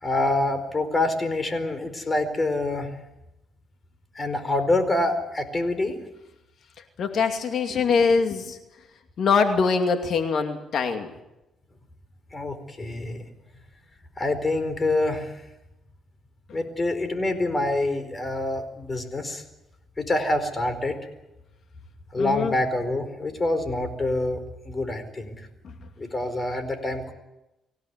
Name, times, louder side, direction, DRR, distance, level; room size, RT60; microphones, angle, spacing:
voice 1, 0.0-2.9 4.1-6.0 12.3-13.2 14.2-15.3 16.5-19.4 20.0-21.0 22.1-24.4 24.6-25.4 26.0-27.1, left 2 dB, 25° left, 10 dB, 4.6 m, -26 dB
voice 2, 7.0-8.6 9.2-11.1 22.2-22.5, left 5 dB, 60° left, 6 dB, 2.5 m, -23 dB
25.0 x 17.0 x 9.8 m, 0.95 s
cardioid pair, 90°, 0 cm